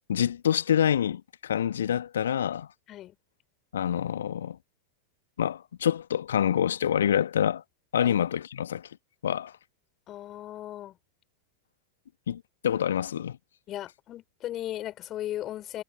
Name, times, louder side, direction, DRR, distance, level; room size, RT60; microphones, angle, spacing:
voice 1, 0.1-2.7 3.7-4.6 5.4-7.6 7.9-8.9 9.2-9.5 12.3-13.4, left 9 dB, 65° left, 1.8 m, -26 dB
voice 2, 10.1-10.9 13.7-15.8, left 13 dB, 30° left, 6.1 m, -36 dB
figure-of-eight pair, 90°, 0 cm